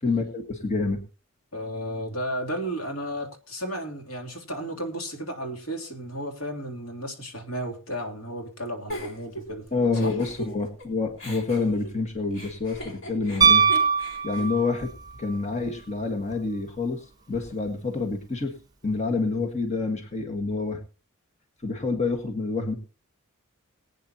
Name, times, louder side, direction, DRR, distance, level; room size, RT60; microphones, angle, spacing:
voice 1, 0.0-1.0 9.7-13.6 14.2-14.9 15.2-18.5 18.8-20.8 21.6-22.7, left 3 dB, 30° left, 3 dB, 1.7 m, -27 dB
voice 2, 1.5-9.7 9.9-10.1, equal, 75° left, 3 dB, 3.2 m, -33 dB
Giggle, 8.9-10.9 11.2-15.4, equal, 60° left, 3.9 m, -40 dB
Piano, 13.4-15.0 17.3-17.4, right 6 dB, 20° right, 1.0 m, -20 dB
22.0 x 9.3 x 2.9 m, 0.32 s
head